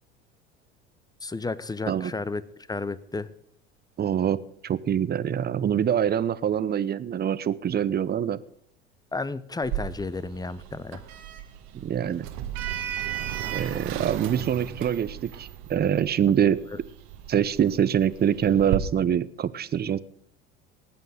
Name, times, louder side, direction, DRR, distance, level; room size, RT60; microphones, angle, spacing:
voice 1, 1.2-2.4 2.7-3.3 9.1-11.0 16.7-16.8, left 3 dB, 10° left, 17 dB, 1.0 m, -32 dB
voice 2, 4.0-4.4 4.6-8.4 11.7-12.3 13.5-16.6 17.3-20.0, right 9 dB, 30° right, 16 dB, 0.9 m, -25 dB
Sliding door, 9.6-18.8, right 11 dB, 60° right, 1.8 m, -35 dB
19.5 x 9.3 x 5.1 m, 0.68 s
hypercardioid pair, 70°, 32 cm